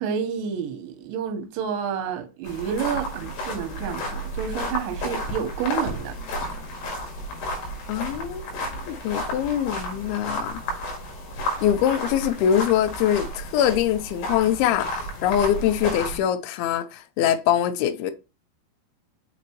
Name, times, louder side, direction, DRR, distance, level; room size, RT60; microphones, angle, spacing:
voice 1, 0.0-6.2, right 7 dB, 85° right, 3.5 m, -29 dB
sound 1, 2.4-16.2, equal, 70° left, 3.6 m, -32 dB
voice 2, 7.9-8.5 8.9-10.6 11.6-18.1, left 10 dB, 85° left, 2.2 m, -23 dB
6.7 x 6.1 x 3.0 m
omnidirectional pair, 5.2 m